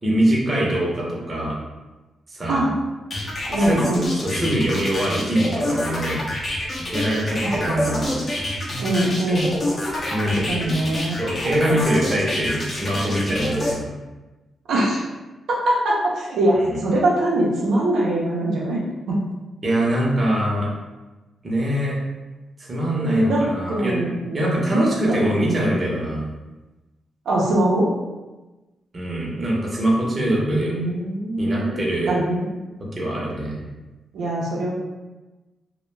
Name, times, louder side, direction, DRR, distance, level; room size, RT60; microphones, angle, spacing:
voice 1, 0.0-1.6 2.3-2.6 3.6-3.8 4.2-6.3 6.9-8.1 10.1-10.5 11.2-13.9 16.6-16.7 19.6-20.7 21.4-22.0 22.6-24.0 24.3-26.2 28.9-30.7 31.4-32.1 32.9-33.6, right 1 dB, 30° right, -4 dB, 0.7 m, -23 dB
sound 1, 3.1-13.7, left 1 dB, 40° left, 0.6 m, -27 dB
voice 2, 3.5-4.1 7.4-7.9 8.8-9.5 10.2-11.2 14.7-15.0 15.5-19.2 23.0-24.6 25.0-25.6 27.3-27.9 30.2-32.6 34.1-34.7, right 1 dB, 85° right, -5 dB, 0.5 m, -23 dB
2.2 x 2.1 x 3.1 m, 1.1 s
cardioid pair, 105°, 0 cm